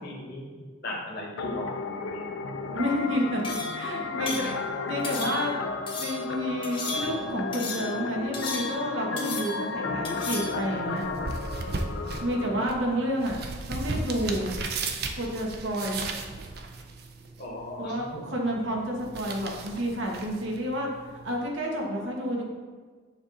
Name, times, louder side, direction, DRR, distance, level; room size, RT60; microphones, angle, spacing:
voice 1, 0.0-2.7 4.4-4.5 17.4-18.4, left 1 dB, 55° left, -3 dB, 1.3 m, -38 dB
sound 1, 1.4-12.7, left 4 dB, 75° left, 0.5 m, -33 dB
voice 2, 2.7-4.5 4.9-5.6 6.0-11.1 12.2-13.4 13.7-14.5 15.2-16.0 17.8-20.9 21.2-22.4, equal, 75° right, -1 dB, 1.1 m, -30 dB
sound 2, 3.4-3.8 4.3-4.5 5.0-5.6 5.9-6.3 6.6-7.2 7.5-8.0 8.3-8.9 9.2-9.7 10.0-10.6, left 3 dB, 25° left, 0.7 m, -35 dB
sound 3, 10.5-21.5, right 3 dB, 55° right, 0.5 m, -37 dB
7.1 x 2.5 x 5.4 m, 1.5 s
head